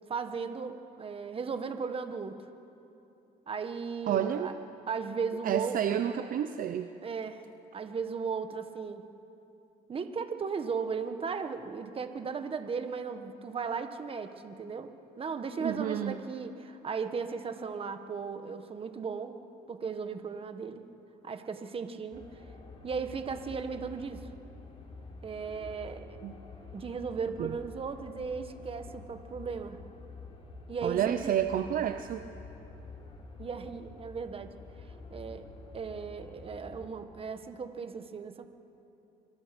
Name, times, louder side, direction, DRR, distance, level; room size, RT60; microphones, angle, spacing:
voice 1, 0.1-2.4 3.5-4.5 4.9-5.8 7.0-7.5 7.7-9.0 9.9-14.9 15.2-19.4 19.7-20.9 21.2-22.4 22.8-24.3 25.2-26.1 26.7-29.8 30.7-31.3 33.4-35.5 35.7-38.4, right 5 dB, 35° right, 8 dB, 1.6 m, -36 dB
voice 2, 4.1-4.5 5.4-6.9 15.6-16.2 26.2-26.3 27.4-27.5 30.8-32.3, right 10 dB, 55° right, 9 dB, 0.8 m, -30 dB
sound 1, 22.1-36.9, left 3 dB, 35° left, 4.4 m, -48 dB
25.5 x 24.0 x 6.1 m, 2.9 s
cardioid pair, 110°, 17 cm